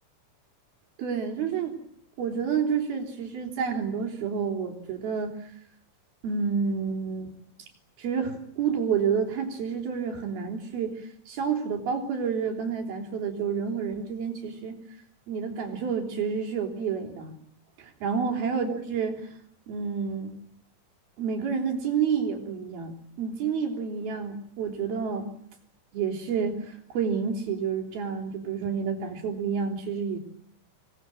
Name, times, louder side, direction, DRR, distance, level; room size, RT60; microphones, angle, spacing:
voice 1, 1.0-1.8 2.2-5.4 6.2-7.3 8.0-11.0 11.3-14.8 15.3-17.3 17.8-19.2 19.7-20.3 21.2-22.9 23.2-25.3 25.9-30.2, right 6 dB, 85° right, 4 dB, 5.5 m, -29 dB
27.0 x 20.5 x 9.1 m, 0.68 s
omnidirectional pair, 4.2 m